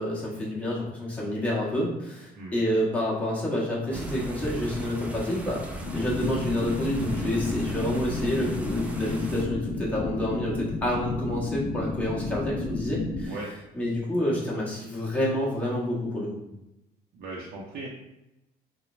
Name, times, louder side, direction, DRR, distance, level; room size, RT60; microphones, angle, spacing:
voice 1, 0.0-13.4 13.7-16.3, left 1 dB, 10° left, -6 dB, 0.9 m, -28 dB
sound 1, 3.9-9.4, right 1 dB, 10° right, 0.3 m, -37 dB
sound 2, 5.8-13.3, left 3 dB, 80° left, 0.5 m, -32 dB
voice 2, 17.1-17.9, right 2 dB, 65° right, -4 dB, 0.5 m, -38 dB
3.0 x 2.0 x 2.4 m, 0.89 s
cardioid pair, 110°, 17 cm